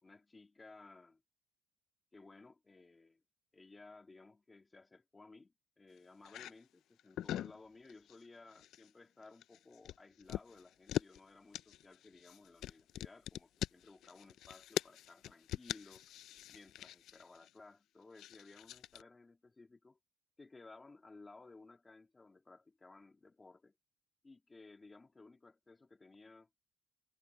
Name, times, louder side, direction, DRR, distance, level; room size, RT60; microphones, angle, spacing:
voice 1, 0.0-1.2 2.1-3.2 3.5-16.1 16.5-20.0 20.4-23.8 24.2-26.5, left 3 dB, 15° left, 2.4 m, -58 dB
sound 1, 6.2-6.5 7.0-7.6 7.8-8.2 8.5-8.9 9.2-11.2 11.5-17.5 18.2-19.0, left 13 dB, 65° left, 0.4 m, -42 dB
cardioid pair, 140°, 0 cm